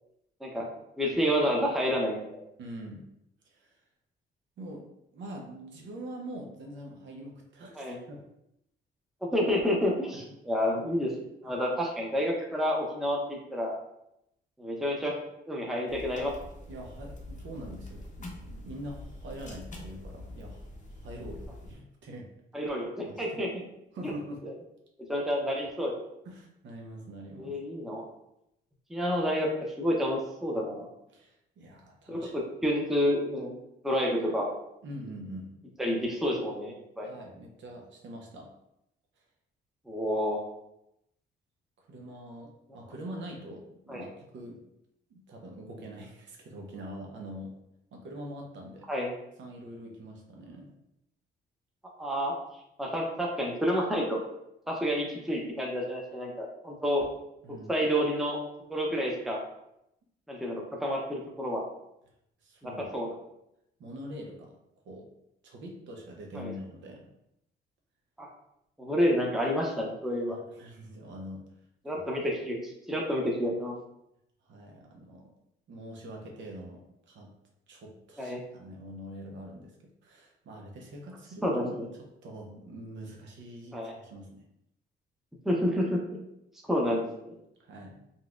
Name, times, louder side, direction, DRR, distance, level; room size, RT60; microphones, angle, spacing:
voice 1, 1.0-2.4 7.8-8.0 9.2-11.1 11.4-13.8 14.6-15.2 15.5-16.3 22.5-23.5 25.1-25.9 27.4-28.1 28.9-29.5 29.8-30.9 32.1-33.5 33.8-34.5 35.8-37.1 39.9-40.4 43.9-44.1 48.9-49.1 52.0-52.3 52.8-54.2 54.7-57.1 57.5-58.4 58.7-59.4 60.3-61.6 62.6-63.1 66.3-66.5 68.2-68.3 68.8-70.4 71.8-73.8 78.2-78.4 81.4-81.9 83.7-83.9 85.4-86.0 86.7-87.3, equal, ahead, -1 dB, 0.7 m, -29 dB
voice 2, 2.6-3.0 3.5-3.7 4.6-4.9 5.1-8.2 10.1-10.3 16.7-20.6 21.0-22.3 23.0-23.4 23.9-24.4 26.2-27.5 31.1-32.3 34.8-35.5 37.0-38.5 41.8-44.1 44.3-44.6 45.1-47.5 47.9-48.9 49.4-50.7 57.4-57.7 62.4-63.0 63.8-64.5 64.9-65.1 65.4-67.1 70.3-71.4 71.9-72.0 74.4-75.3 75.7-77.3 77.7-79.7 80.0-84.4 87.6-88.0, right 1 dB, 65° right, 0 dB, 0.7 m, -44 dB
sound 1, 15.9-21.7, left 1 dB, 40° left, 0.7 m, -44 dB
3.9 x 2.3 x 2.4 m, 0.81 s
cardioid pair, 90°, 20 cm